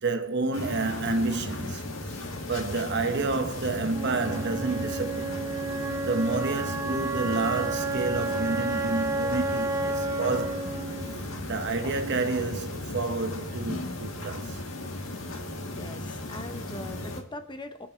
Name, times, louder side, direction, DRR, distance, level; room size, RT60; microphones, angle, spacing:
voice 1, 0.0-1.8 2.5-5.3 6.1-10.7 11.5-14.6, right 3 dB, 60° right, 1.0 m, -29 dB
sound 1, 0.5-17.2, left 1 dB, 80° left, 1.7 m, -36 dB
Wind instrument woodwind instrument, 3.9-11.9, right 3 dB, 15° right, 0.6 m, -31 dB
voice 2, 15.7-17.9, left 2 dB, 25° left, 0.6 m, -41 dB
22.0 x 8.1 x 3.2 m
head